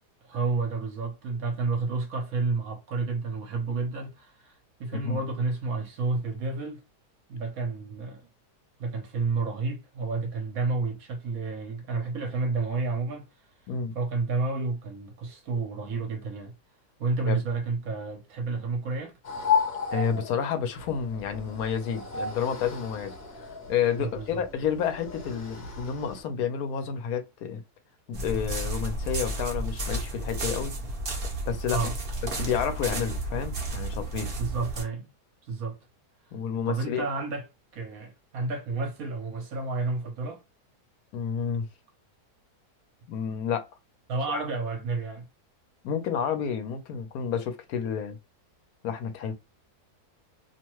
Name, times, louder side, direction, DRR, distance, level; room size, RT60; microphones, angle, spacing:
voice 1, 0.2-6.8 7.3-8.3 8.8-13.3 13.9-16.5 17.0-19.1 24.0-24.4 31.7-31.9 34.4-35.1 35.4-35.8 36.7-37.5 37.7-40.4 44.1-45.3, right 3 dB, 65° right, 1.2 m, -30 dB
sound 1, 19.2-26.2, left 6 dB, 45° left, 1.0 m, -33 dB
voice 2, 19.9-23.2 23.7-27.6 28.1-30.7 31.5-31.8 32.3-34.3 36.3-37.0 41.1-41.7 43.1-43.7 44.3-44.4 45.8-48.2 48.8-49.3, left 7 dB, 70° left, 1.1 m, -30 dB
sound 2, 28.1-34.8, right 2 dB, 45° right, 0.8 m, -32 dB
2.9 x 2.2 x 3.0 m
omnidirectional pair, 1.7 m